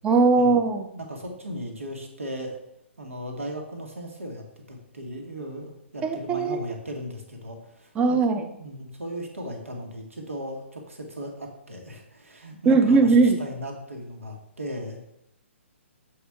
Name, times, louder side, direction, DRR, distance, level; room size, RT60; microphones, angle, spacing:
voice 1, 0.0-0.9 6.0-6.6 8.0-8.4 12.7-13.4, right 4 dB, 15° right, 8 dB, 0.6 m, -19 dB
voice 2, 0.9-2.5 3.0-8.2 8.6-15.0, equal, 80° right, 2 dB, 1.6 m, -37 dB
7.2 x 4.9 x 3.6 m, 0.81 s
figure-of-eight pair, 130°, 7 cm